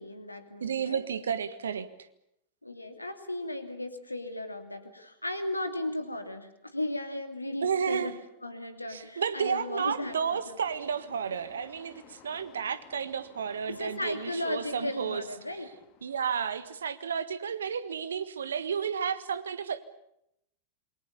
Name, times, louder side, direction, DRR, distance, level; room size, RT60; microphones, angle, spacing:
voice 1, 0.0-1.0 2.6-10.6 13.7-15.7, left 1 dB, 85° left, 8 dB, 2.7 m, -36 dB
voice 2, 0.6-1.9 7.6-8.1 8.9-15.2 16.0-19.8, right 7 dB, 70° right, 14 dB, 1.6 m, -32 dB
sound 1, 8.9-16.8, left 7 dB, 40° left, 3.5 m, -57 dB
27.5 x 23.5 x 7.0 m, 0.80 s
figure-of-eight pair, 90°, 0 cm